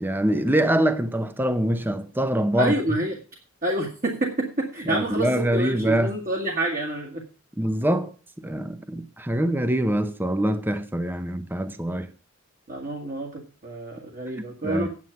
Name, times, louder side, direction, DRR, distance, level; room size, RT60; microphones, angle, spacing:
voice 1, 0.0-2.7 4.9-6.1 7.6-8.1 8.4-12.1 14.6-14.9, right 1 dB, 10° right, 0.6 m, -24 dB
voice 2, 2.6-3.2 3.6-7.2 12.7-14.9, right 1 dB, 40° right, 1.8 m, -28 dB
9.6 x 7.9 x 5.6 m
head